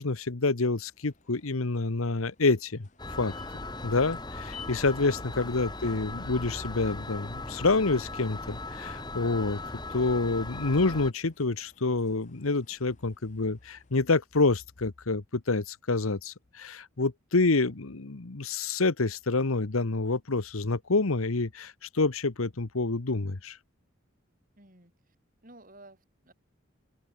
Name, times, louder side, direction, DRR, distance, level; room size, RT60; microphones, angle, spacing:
voice 1, 0.0-2.9 3.2-3.3 3.8-9.6 9.9-23.6, left 3 dB, 85° left, 1.2 m, -27 dB
sound 1, 0.7-14.3, left 6 dB, 35° left, 3.6 m, -57 dB
sound 2, 3.0-11.1, left 2 dB, 20° left, 2.1 m, -38 dB
voice 2, 17.4-17.8 24.6-25.2 25.4-26.3, right 1 dB, 40° right, 7.3 m, -55 dB
open air
head